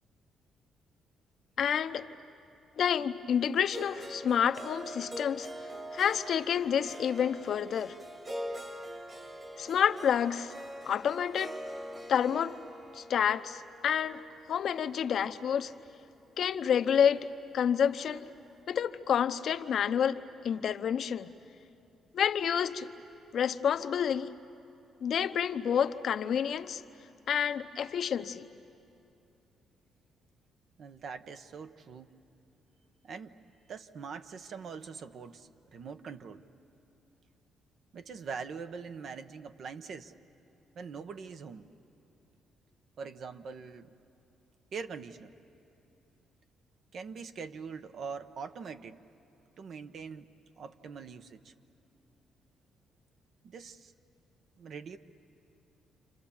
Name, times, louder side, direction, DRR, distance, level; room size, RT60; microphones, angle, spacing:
voice 1, 1.6-2.1 2.8-5.5 5.9-8.0 9.6-10.5 10.9-11.6 12.1-12.6 12.9-14.2 14.5-15.7 16.4-18.3 18.7-20.2 20.4-21.3 22.1-22.9 23.3-24.3 25.0-26.8 27.3-28.5, left 8 dB, 65° left, 0.8 m, -29 dB
Harp, 3.7-15.8, equal, 30° right, 1.8 m, -44 dB
voice 2, 30.8-32.1 33.0-33.3 33.7-36.4 37.9-40.1 40.8-41.7 43.0-43.9 44.7-45.3 46.9-49.0 49.6-50.3 50.6-51.5 53.4-53.9 54.6-55.0, right 5 dB, 60° right, 0.9 m, -43 dB
29.5 x 26.0 x 7.2 m
cardioid pair, 90°, 0 cm